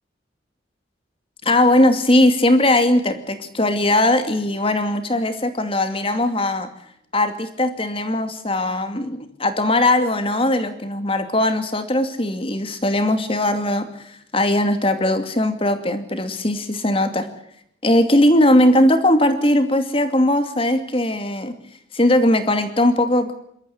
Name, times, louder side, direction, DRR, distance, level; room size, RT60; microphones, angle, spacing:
voice 1, 1.4-6.7 7.1-17.3 17.8-21.5 21.9-23.3, left 1 dB, 30° left, 8 dB, 2.5 m, -19 dB
27.0 x 13.5 x 8.5 m, 0.71 s
head